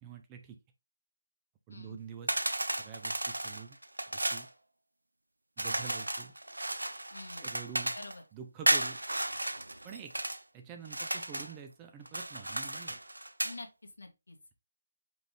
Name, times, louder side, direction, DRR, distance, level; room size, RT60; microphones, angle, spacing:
voice 1, 0.0-0.6 1.7-2.4 2.8-3.8 4.1-4.5 5.6-6.3 7.4-8.0 8.3-9.0 9.8-10.1 10.5-13.0, right 7 dB, 15° right, 5 dB, 0.4 m, -47 dB
sound 1, 2.3-4.5 5.6-8.2 8.7-10.4 10.8-11.5 12.1-13.6, right 1 dB, 90° right, 0.5 m, -34 dB
voice 2, 7.1-7.5 7.9-8.2 13.4-14.4, left 2 dB, 70° left, 3 dB, 1.4 m, -47 dB
5.2 x 2.6 x 3.2 m, 0.25 s
figure-of-eight pair, 155°, 0 cm